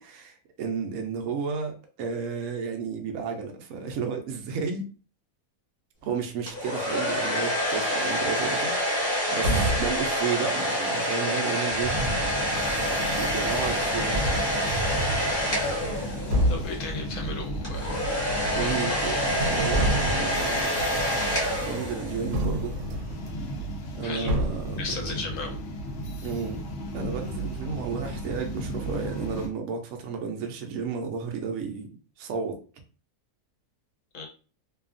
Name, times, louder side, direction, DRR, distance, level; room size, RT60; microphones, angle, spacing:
voice 1, 0.0-4.9 6.0-12.0 12.9-14.2 18.6-20.9 21.6-22.8 23.9-24.8 26.2-26.6 26.9-31.9 32.2-32.6, right 5 dB, 70° right, 0.9 m, -32 dB
sound 1, 6.5-16.6 17.6-22.4, equal, 20° left, 0.9 m, -27 dB
sound 2, 9.4-10.0 11.7-12.3 13.6-13.7 14.1-15.3 15.8-16.0 16.3-16.8 18.3-19.0 19.3-20.4 22.3-23.3 24.3-24.8, right 1 dB, 90° right, 1.1 m, -28 dB
sound 3, 11.9-29.5, right 1 dB, 80° left, 0.5 m, -35 dB
voice 2, 16.5-18.0 18.6-19.1 24.0-24.4 24.8-25.6 34.1-34.3, left 4 dB, 65° left, 0.9 m, -35 dB
2.7 x 2.3 x 2.4 m
omnidirectional pair, 1.7 m